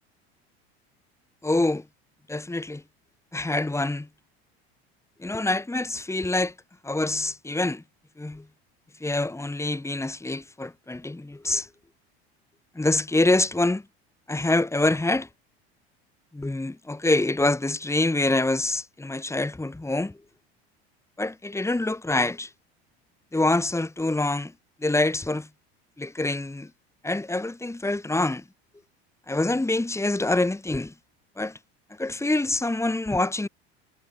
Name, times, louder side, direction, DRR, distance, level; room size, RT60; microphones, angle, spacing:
voice 1, 1.4-1.8 2.3-2.8 3.3-4.1 5.2-6.5 6.8-7.8 8.2-8.4 9.0-11.7 12.8-13.8 14.3-15.3 16.3-20.1 21.2-22.5 23.3-24.5 24.8-25.5 26.0-26.7 27.0-28.4 29.3-30.9 31.4-31.6 32.0-33.5, left 2 dB, 10° left, 4.3 m, -25 dB
hypercardioid pair, 90°, 32 cm